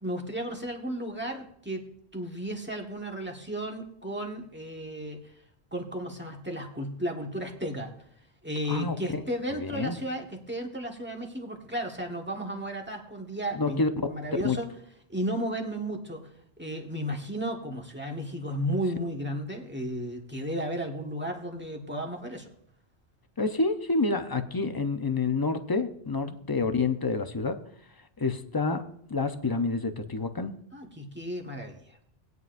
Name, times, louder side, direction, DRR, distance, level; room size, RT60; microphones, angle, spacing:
voice 1, 0.0-1.8 2.1-5.2 5.7-7.9 8.4-14.7 15.1-16.2 16.6-22.5 26.2-26.4 30.7-32.0, equal, 10° right, 1 dB, 1.5 m, -34 dB
voice 2, 9.5-10.0 13.5-13.9 14.4-14.6 23.4-27.6 28.2-28.8 29.1-30.6, left 3 dB, 25° left, 8 dB, 0.6 m, -28 dB
18.5 x 9.4 x 2.6 m, 0.71 s
omnidirectional pair, 1.1 m